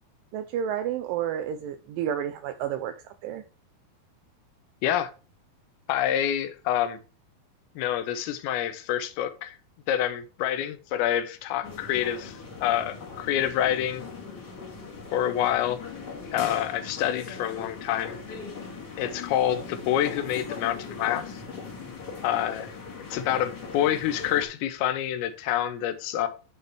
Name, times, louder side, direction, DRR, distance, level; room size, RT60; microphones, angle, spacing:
voice 1, 0.3-3.4, right 9 dB, 85° right, 2.0 m, -31 dB
voice 2, 5.9-7.0 7.8-9.6 9.9-14.1 15.1-15.8 16.3-18.2 19.0-21.4 22.2-22.7 23.1-26.3, left 11 dB, 90° left, 2.6 m, -27 dB
sound 1, 11.6-24.5, left 5 dB, 35° left, 2.0 m, -40 dB
9.6 x 4.1 x 3.3 m
omnidirectional pair, 4.4 m